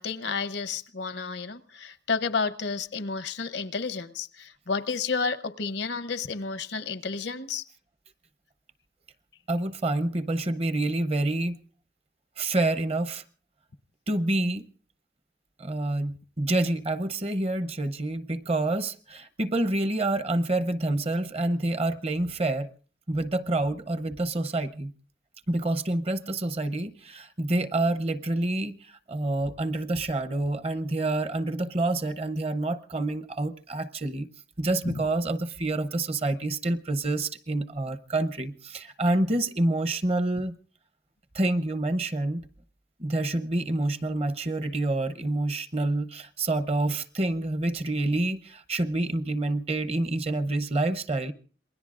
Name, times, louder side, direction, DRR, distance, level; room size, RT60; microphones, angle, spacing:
voice 1, 0.0-7.6 34.9-35.0, left 4 dB, 80° left, 0.8 m, -31 dB
voice 2, 9.5-11.6 12.4-13.2 14.1-14.7 15.6-22.7 23.1-24.9 25.5-34.3 34.6-40.6 41.3-42.4 43.0-51.3, right 2 dB, 35° right, 0.7 m, -27 dB
27.5 x 20.5 x 2.5 m
head